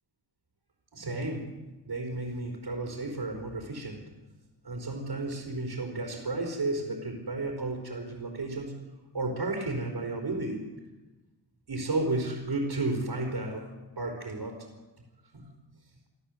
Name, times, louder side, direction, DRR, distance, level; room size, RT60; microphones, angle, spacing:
voice 1, 0.9-1.6 1.9-4.0 4.6-8.8 9.1-10.6 11.7-13.7 14.0-14.6 15.3-15.5, right 2 dB, 65° right, 1 dB, 4.5 m, -32 dB
25.5 x 14.0 x 8.0 m, 1.1 s
wide cardioid pair, 100°, 43 cm